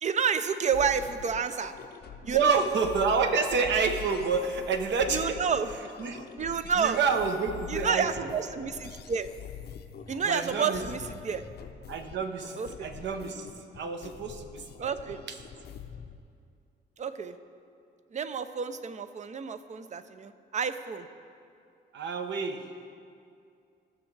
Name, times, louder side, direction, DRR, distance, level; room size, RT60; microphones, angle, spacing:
voice 1, 0.0-1.7 2.2-2.6 5.1-5.7 6.4-7.0 7.7-9.3 10.1-11.5 12.6-12.9 14.8-15.2 17.0-17.4 18.1-21.1, right 6 dB, 35° right, 11 dB, 0.5 m, -30 dB
sound 1, 0.7-16.2, left 8 dB, 55° left, 0.6 m, -45 dB
voice 2, 2.2-5.4 6.0-6.2 6.8-8.3 10.2-10.8 11.9-15.4 21.9-22.7, right 5 dB, 65° right, 7 dB, 0.8 m, -29 dB
16.0 x 6.2 x 3.3 m, 2.4 s
cardioid pair, 90°, 20 cm